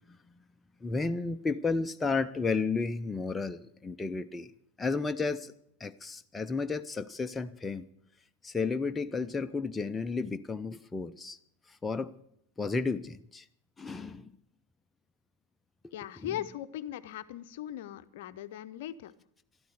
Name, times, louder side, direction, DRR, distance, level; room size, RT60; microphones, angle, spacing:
voice 1, 0.8-4.5 4.8-5.5 5.8-7.9 8.4-11.4 11.7-12.1 12.6-13.4 13.8-14.3 15.8-15.9, left 4 dB, 10° left, 0.5 m, -32 dB
voice 2, 15.9-19.1, left 12 dB, 50° left, 0.6 m, -39 dB
12.5 x 12.0 x 8.0 m
figure-of-eight pair, 90°, 0 cm